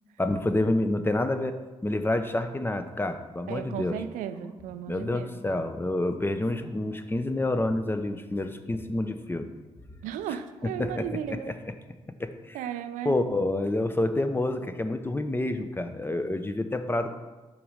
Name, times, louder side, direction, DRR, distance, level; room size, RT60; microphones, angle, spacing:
voice 1, 0.2-4.0 4.9-9.5 10.8-11.4 12.2-12.6 13.0-17.2, left 2 dB, 15° left, 8 dB, 0.6 m, -28 dB
voice 2, 3.5-5.4 10.0-11.6 12.5-13.4, right 9 dB, 85° right, 10 dB, 0.4 m, -35 dB
sound 1, 3.6-9.2 9.5-11.1, left 2 dB, 35° left, 1.4 m, -50 dB
5.8 x 4.0 x 5.0 m, 1.2 s
supercardioid pair, 50°, 13 cm